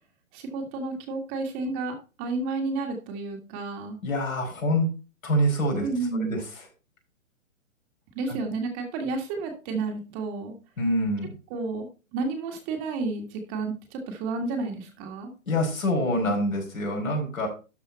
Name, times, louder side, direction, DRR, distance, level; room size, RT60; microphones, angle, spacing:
voice 1, 0.3-4.0 5.8-6.4 8.1-10.5 11.5-15.3, right 3 dB, 25° right, 3 dB, 1.8 m, -31 dB
voice 2, 4.0-4.9 5.2-5.9 6.2-6.6 8.3-8.4 10.8-11.3 15.5-17.5, equal, 75° left, 0 dB, 5.1 m, -26 dB
12.5 x 4.9 x 4.2 m, 0.32 s
hypercardioid pair, 135°, 41 cm